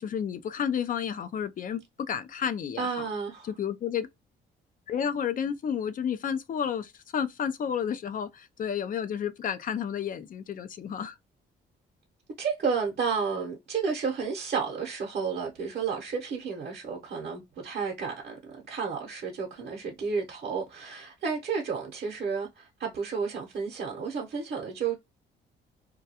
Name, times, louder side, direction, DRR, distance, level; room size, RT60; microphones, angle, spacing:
voice 1, 0.0-3.1 3.4-4.1 4.9-11.2, left 8 dB, 45° left, 0.4 m, -31 dB
voice 2, 2.8-3.5 12.4-24.9, right 5 dB, 55° right, 0.8 m, -32 dB
2.3 x 2.3 x 2.7 m
cardioid pair, 90°, 20 cm